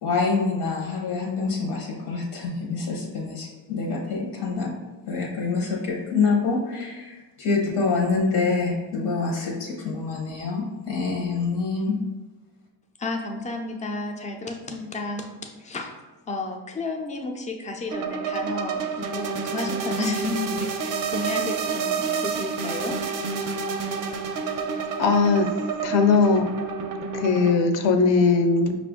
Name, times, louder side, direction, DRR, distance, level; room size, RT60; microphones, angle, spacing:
voice 1, 0.0-4.7 5.1-12.0, left 4 dB, 90° left, -1 dB, 1.0 m, -26 dB
voice 2, 13.0-15.3 15.6-15.9 16.3-23.0, left 2 dB, 20° left, 2 dB, 0.3 m, -32 dB
sound 1, 17.9-27.6, right 5 dB, 45° right, 0.4 m, -29 dB
voice 3, 25.0-25.5 25.8-26.5 27.1-28.7, left 4 dB, 70° left, 7 dB, 0.6 m, -19 dB
5.5 x 2.5 x 3.5 m, 1.2 s
cardioid pair, 165°, 45 cm